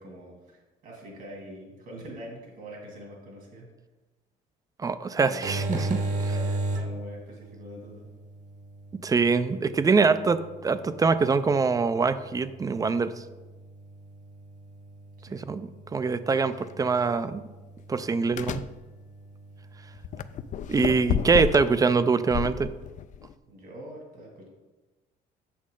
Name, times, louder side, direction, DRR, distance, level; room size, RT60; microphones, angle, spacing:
voice 1, 0.0-3.7 5.2-8.1 15.3-15.4 23.5-24.5, equal, 65° right, -1 dB, 2.3 m, -44 dB
voice 2, 4.8-6.0 9.0-13.1 15.3-17.4 17.9-18.6 20.7-22.7, right 4 dB, 20° right, 13 dB, 0.4 m, -24 dB
sound 1, 5.2-22.6, right 2 dB, 45° right, 1.2 m, -38 dB
sound 2, 16.3-16.5 17.0-17.1 18.3-18.7 20.0-21.8 22.3-23.3, left 10 dB, 50° left, 0.4 m, -31 dB
8.5 x 6.2 x 3.8 m, 1.2 s
cardioid pair, 110°, 17 cm